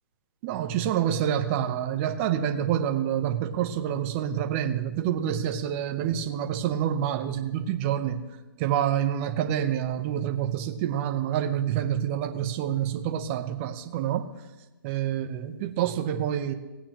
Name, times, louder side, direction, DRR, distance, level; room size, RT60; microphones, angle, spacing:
voice 1, 0.4-8.2 8.6-14.3 14.8-16.5, right 10 dB, 35° right, 7 dB, 1.0 m, -27 dB
18.5 x 8.6 x 3.1 m, 1.1 s
hypercardioid pair, 135°, 12 cm